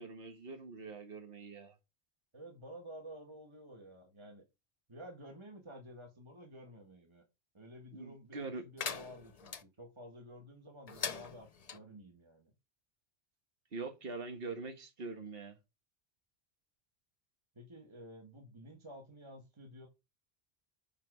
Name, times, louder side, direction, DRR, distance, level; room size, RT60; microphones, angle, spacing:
voice 1, 0.0-1.7 7.9-8.6 13.7-15.6, right 3 dB, 65° right, 1.6 m, -43 dB
voice 2, 2.3-4.4 4.9-7.3 7.5-12.5 17.5-19.9, equal, 25° right, 1.6 m, -52 dB
sound 1, 8.8-9.6 10.9-11.8, left 6 dB, 40° left, 0.7 m, -41 dB
7.5 x 5.2 x 6.1 m
omnidirectional pair, 1.1 m